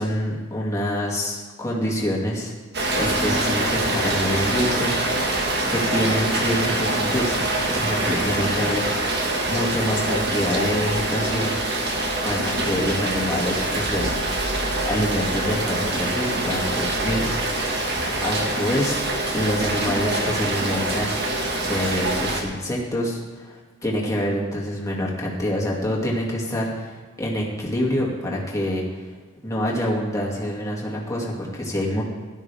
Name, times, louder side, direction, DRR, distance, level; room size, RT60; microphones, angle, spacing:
voice 1, 0.0-2.5 3.0-5.4 5.7-7.4 7.7-11.6 12.2-14.1 14.8-17.2 17.5-17.6 18.2-19.0 19.3-21.1 21.6-29.1 29.4-32.0, equal, 15° left, -3 dB, 2.3 m, -26 dB
Rain, 2.7-22.4, right 2 dB, 55° right, 1.8 m, -24 dB
16.0 x 12.5 x 3.5 m, 1.4 s
head